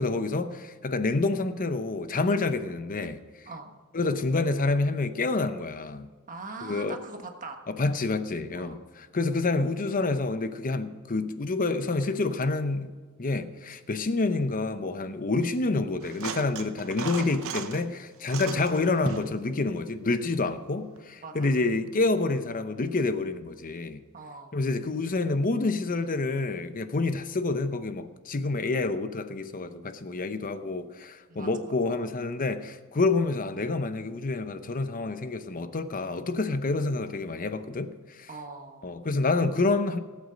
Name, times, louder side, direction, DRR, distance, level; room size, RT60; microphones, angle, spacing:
voice 1, 0.0-3.2 3.9-6.1 6.6-7.0 7.7-24.0 24.5-38.3 38.8-40.0, left 3 dB, 40° left, 0.7 m, -28 dB
voice 2, 6.3-7.6 8.5-8.8 21.2-21.5 24.1-24.5 31.3-31.7 38.3-38.9, right 3 dB, 35° right, 1.4 m, -42 dB
sound 1, 16.0-17.8 18.2-19.4 21.0-21.1, right 5 dB, 65° right, 0.9 m, -36 dB
18.0 x 8.3 x 5.2 m
head